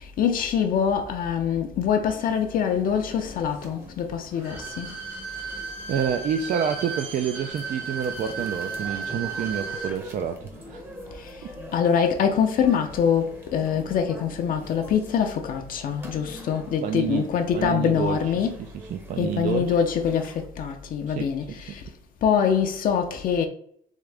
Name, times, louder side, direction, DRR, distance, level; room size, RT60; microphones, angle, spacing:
voice 1, 0.0-4.9 11.2-11.4 11.7-18.6 19.2-21.8 22.2-23.5, left 7 dB, 55° left, 0.5 m, -24 dB
sound 1, 2.2-20.5, equal, 15° right, 0.8 m, -45 dB
Bowed string instrument, 4.3-10.0 10.3-10.4, right 5 dB, 90° right, 1.7 m, -34 dB
voice 2, 5.9-10.9 11.4-11.5 16.8-17.3 17.5-18.2 18.6-19.8 21.1-21.3 21.7-21.8, right 8 dB, 50° right, 0.4 m, -28 dB
3.6 x 3.6 x 3.3 m
cardioid pair, 110°, 17 cm